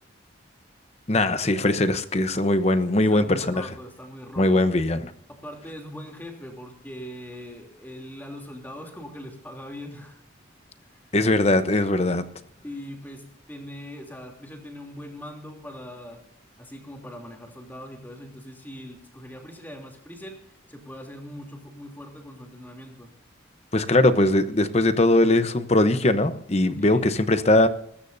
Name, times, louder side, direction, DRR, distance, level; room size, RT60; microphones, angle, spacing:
voice 1, 1.1-3.6 4.4-5.1 11.1-12.2 23.7-27.7, left 2 dB, 35° left, 11 dB, 0.9 m, -20 dB
voice 2, 3.0-4.7 5.3-10.2 10.8-11.1 12.6-16.2 16.6-23.1 23.8-24.0 26.8-27.3, equal, 10° left, 2 dB, 3.1 m, -41 dB
20.0 x 15.5 x 2.7 m, 0.69 s
head